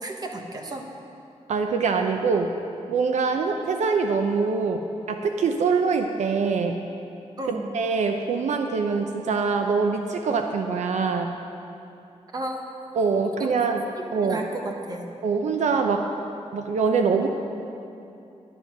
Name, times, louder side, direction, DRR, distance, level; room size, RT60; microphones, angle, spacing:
voice 1, 0.0-0.9 7.4-7.7 12.3-12.8 13.2-13.5 13.9-15.1, right 2 dB, 35° right, 2 dB, 1.2 m, -33 dB
voice 2, 1.5-2.5 2.9-6.8 7.7-11.3 12.9-13.8 14.1-14.4 15.2-16.0 16.5-17.3, right 5 dB, 75° right, 5 dB, 0.7 m, -24 dB
11.0 x 11.0 x 6.1 m, 2.7 s
wide cardioid pair, 160°, 12 cm